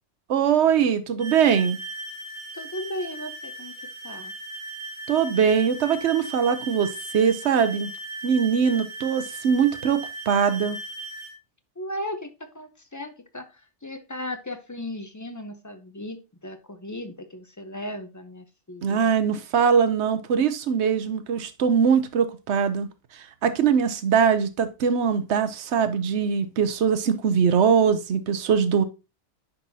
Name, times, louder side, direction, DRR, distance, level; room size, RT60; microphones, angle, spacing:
voice 1, 0.3-1.8 5.1-7.9 8.2-10.0 10.3-10.8 18.8-22.9 23.1-28.8, right 7 dB, 65° right, 1.0 m, -22 dB
sound 1, 1.2-11.3, right 1 dB, 30° right, 0.7 m, -38 dB
voice 2, 2.5-4.3 11.8-19.1, left 1 dB, 20° left, 0.5 m, -36 dB
9.8 x 4.1 x 2.7 m
omnidirectional pair, 1.3 m